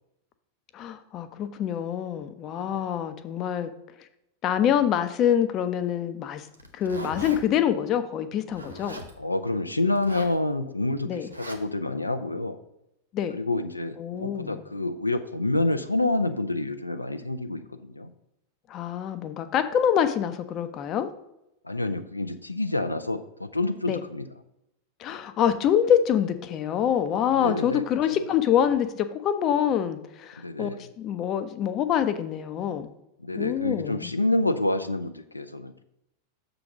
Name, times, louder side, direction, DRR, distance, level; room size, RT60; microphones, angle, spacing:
voice 1, 0.7-3.7 4.4-6.5 6.7-9.0 11.0-11.3 13.1-13.4 14.0-14.6 18.7-21.1 23.9-24.0 25.0-30.7 31.0-32.9 33.4-34.1, left 9 dB, 35° left, 10 dB, 0.7 m, -25 dB
Zipper (clothing), 6.5-7.4 8.5-9.1 9.9-10.4 11.3-11.6, right 1 dB, 85° right, 0.9 m, -39 dB
voice 2, 9.2-12.6 13.3-18.1 21.6-24.3 27.3-27.8 30.4-30.9 33.2-35.8, left 2 dB, 85° left, 9 dB, 0.5 m, -28 dB
6.8 x 4.0 x 5.9 m, 0.84 s
figure-of-eight pair, 90°, 0 cm